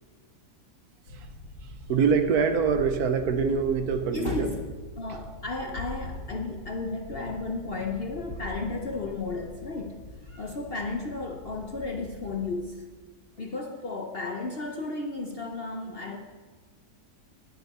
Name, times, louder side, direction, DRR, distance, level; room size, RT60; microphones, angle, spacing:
sound 1, 1.1-12.6, left 1 dB, 65° left, 2.0 m, -43 dB
voice 1, 1.9-4.5, right 6 dB, 65° right, 9 dB, 1.3 m, -24 dB
voice 2, 4.1-4.7 5.0-12.9 13.4-16.2, left 3 dB, 45° left, 3 dB, 0.8 m, -33 dB
19.0 x 8.3 x 4.2 m, 1.4 s
omnidirectional pair, 1.9 m